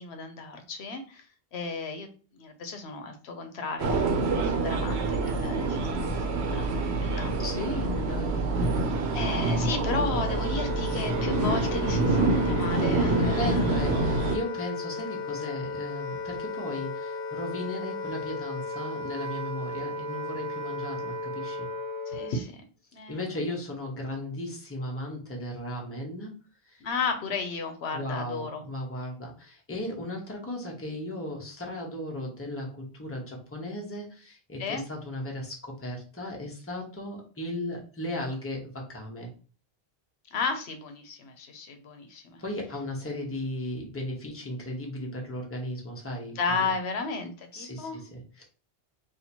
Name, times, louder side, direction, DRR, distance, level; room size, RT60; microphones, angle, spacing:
voice 1, 0.0-2.1 2.3-4.1 4.4-5.9 6.1-7.4 9.1-13.7 22.1-22.6 22.9-23.2 26.8-28.6 34.6-34.8 40.3-42.4 46.4-48.0, left 4 dB, 80° left, 6 dB, 0.9 m, -34 dB
sound 1, 3.8-14.4, right 3 dB, 80° right, 0.9 m, -26 dB
voice 2, 7.4-9.0 13.1-21.7 23.1-26.3 26.7-26.8 27.9-39.3 42.4-46.7 47.5-48.4, left 1 dB, 15° left, -1 dB, 0.8 m, -36 dB
Wind instrument woodwind instrument, 9.8-22.4, left 3 dB, 65° left, 1.0 m, -35 dB
2.8 x 2.5 x 4.2 m, 0.38 s
omnidirectional pair, 1.1 m